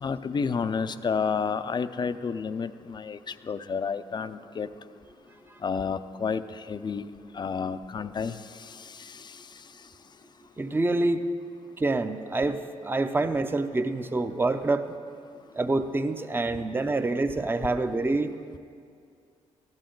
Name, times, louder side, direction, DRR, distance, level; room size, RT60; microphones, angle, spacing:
voice 1, 0.0-4.7 5.6-7.0 7.3-9.4, left 5 dB, 35° left, 12 dB, 0.4 m, -31 dB
voice 2, 10.6-11.3 11.8-14.9 15.5-18.3, right 2 dB, 15° right, 9 dB, 0.6 m, -26 dB
14.0 x 10.5 x 3.8 m, 2.2 s
cardioid pair, 70°, 13 cm